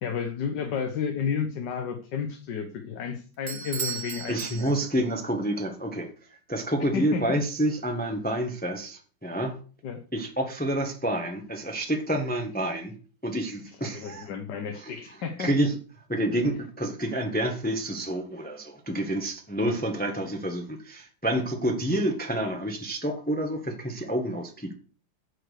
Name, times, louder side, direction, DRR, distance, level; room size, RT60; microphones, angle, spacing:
voice 1, 0.0-4.8 6.9-7.4 9.8-10.0 13.8-15.5 19.6-19.8, left 6 dB, 65° left, 5 dB, 1.7 m, -32 dB
Bell / Doorbell, 3.5-5.2, right 7 dB, 45° right, 1.3 m, -36 dB
voice 2, 4.3-9.6 10.1-12.9 13.2-14.3 14.7-14.9 15.4-15.8 16.1-24.7, right 1 dB, 5° left, 3 dB, 1.3 m, -28 dB
9.0 x 7.2 x 6.6 m, 0.40 s
omnidirectional pair, 2.0 m